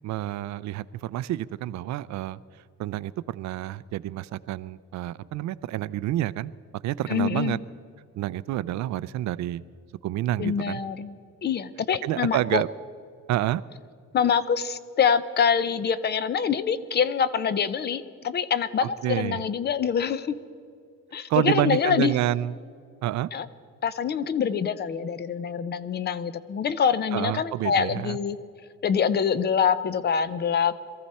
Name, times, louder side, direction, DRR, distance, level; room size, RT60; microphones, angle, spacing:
voice 1, 0.0-2.4 2.8-6.5 6.8-7.6 8.2-9.6 10.0-10.8 12.0-12.7 13.3-13.6 18.8-19.4 21.3-22.5 23.0-23.3 27.1-28.2, right 14 dB, 70° right, 17 dB, 0.5 m, -28 dB
voice 2, 7.1-7.6 10.4-11.1 11.4-12.6 14.1-20.4 21.1-22.1 23.3-23.5 23.8-28.4 28.8-30.7, left 7 dB, 35° left, 15 dB, 0.5 m, -25 dB
22.5 x 14.5 x 4.2 m, 2.3 s
cardioid pair, 160°, 29 cm